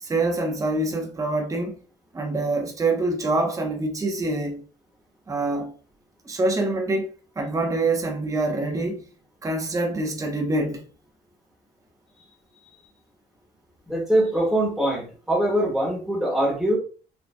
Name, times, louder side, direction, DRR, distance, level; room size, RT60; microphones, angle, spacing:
voice 1, 0.0-1.7 2.1-4.6 5.3-5.7 6.2-7.1 7.4-9.0 9.4-10.8, right 2 dB, 20° right, 0.9 m, -25 dB
voice 2, 13.9-16.8, right 1 dB, 5° right, 1.5 m, -23 dB
4.3 x 3.1 x 2.3 m
cardioid pair, 110°, 17 cm